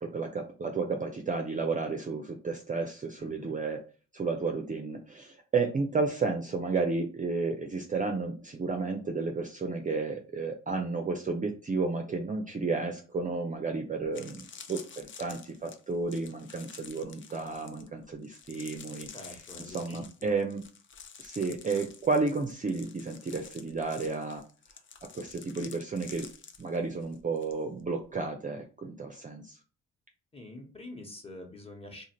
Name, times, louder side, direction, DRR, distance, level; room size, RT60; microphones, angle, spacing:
voice 1, 0.0-3.8 4.1-19.4 19.7-20.6 21.2-24.4 25.1-26.3 26.6-29.6, right 4 dB, 25° right, 4 dB, 0.4 m, -32 dB
voice 2, 3.2-3.6 19.1-20.3 30.3-32.0, left 1 dB, 20° left, 1 dB, 1.1 m, -46 dB
sound 1, 13.5-13.6 14.0-27.5 27.8-28.1, left 6 dB, 40° left, 0.5 m, -49 dB
2.5 x 2.5 x 3.0 m, 0.36 s
supercardioid pair, 55°, 32 cm